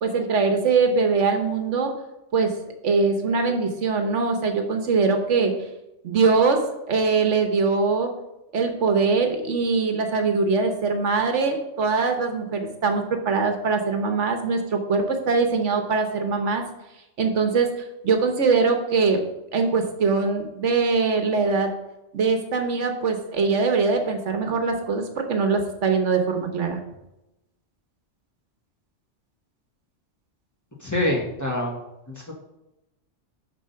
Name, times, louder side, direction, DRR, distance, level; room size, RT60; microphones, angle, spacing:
voice 1, 0.0-1.9 2.3-2.5 2.8-5.5 6.0-6.6 6.9-8.1 8.5-16.6 17.2-17.7 18.0-19.2 19.5-21.7 22.1-26.8, right 4 dB, 75° right, 5 dB, 1.3 m, -22 dB
voice 2, 30.8-31.8 32.1-32.3, left 1 dB, 15° left, -3 dB, 1.6 m, -25 dB
10.0 x 3.8 x 5.6 m, 0.92 s
omnidirectional pair, 1.3 m